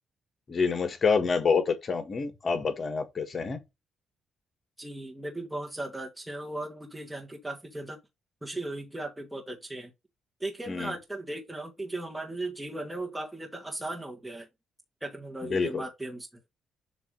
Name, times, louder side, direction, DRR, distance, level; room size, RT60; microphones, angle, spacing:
voice 1, 0.5-3.6 10.7-10.9 15.4-15.8, left 5 dB, 40° left, 1.6 m, -27 dB
voice 2, 4.8-8.0 8.4-9.9 10.4-14.5 15.0-16.3, right 2 dB, 10° right, 1.4 m, -37 dB
7.0 x 2.9 x 5.2 m
cardioid pair, 90°, 0 cm